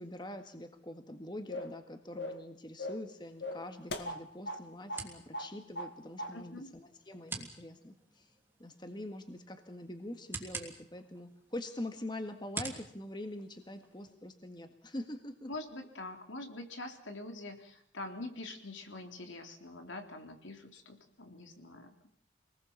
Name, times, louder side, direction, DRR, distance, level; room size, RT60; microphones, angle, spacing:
voice 1, 0.0-8.3 8.6-15.5, left 1 dB, 25° left, 7 dB, 1.8 m, -44 dB
sound 1, 1.5-1.8 2.2-2.5 2.8-3.1 3.4-4.6 4.9-5.1 5.3-5.9 6.2-6.4, left 1 dB, 70° left, 2.2 m, -39 dB
sound 2, 3.2-14.1, right 3 dB, 10° right, 3.0 m, -49 dB
voice 2, 6.3-6.7 15.5-22.0, left 2 dB, 85° left, 4 dB, 3.7 m, -45 dB
26.5 x 20.0 x 7.4 m, 0.64 s
head